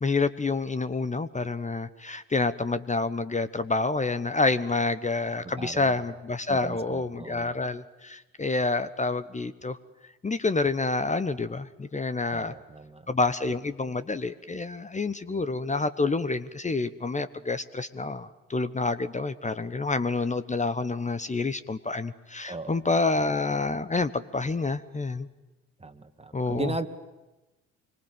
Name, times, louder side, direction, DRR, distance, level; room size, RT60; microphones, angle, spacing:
voice 1, 0.0-9.8 10.2-12.5 13.1-25.3 26.3-26.7, left 3 dB, 20° left, 14 dB, 1.1 m, -28 dB
voice 2, 5.6-6.0 6.5-7.6 12.3-13.1 22.5-22.8 25.8-26.9, right 3 dB, 15° right, 9 dB, 2.2 m, -36 dB
26.5 x 24.5 x 9.2 m, 1.1 s
hypercardioid pair, 50°, 37 cm